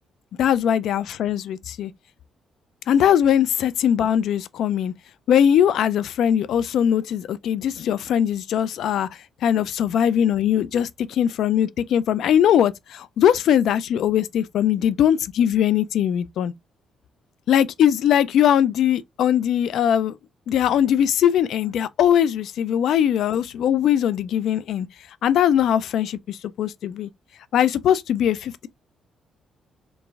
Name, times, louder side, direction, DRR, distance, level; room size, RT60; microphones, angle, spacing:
voice 1, 0.4-1.9 2.9-4.9 5.3-9.1 9.4-16.5 17.5-20.2 20.5-24.9 25.2-27.1 27.5-28.7, left 9 dB, 75° left, 0.4 m, -20 dB
3.5 x 3.1 x 3.4 m
cardioid pair, 90°, 0 cm